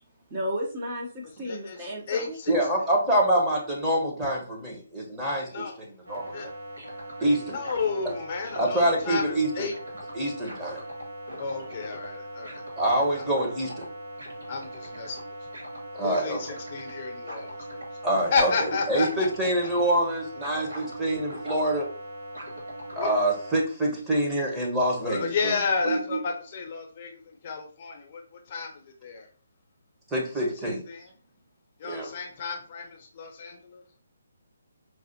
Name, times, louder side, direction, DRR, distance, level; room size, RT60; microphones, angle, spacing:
voice 1, 0.3-2.4, equal, 25° right, 0.9 m, -33 dB
voice 2, 1.4-2.5 5.5-5.8 6.3-6.5 7.5-9.7 11.4-12.6 13.2-13.3 14.5-15.5 16.0-17.8 18.3-19.3 22.9-23.1 25.0-29.3 30.6-31.1 31.8-33.8, left 4 dB, 40° left, 0.7 m, -32 dB
voice 3, 2.5-6.2 7.2-7.6 8.6-9.7 10.1-10.8 12.8-13.9 15.9-16.4 18.0-18.5 18.9-21.9 23.0-25.5 25.8-26.2 30.1-30.8 31.8-32.1, right 1 dB, 10° right, 1.1 m, -26 dB
sound 1, 6.0-23.6, right 1 dB, 80° right, 1.8 m, -40 dB
4.8 x 2.4 x 2.8 m
figure-of-eight pair, 150°, 0 cm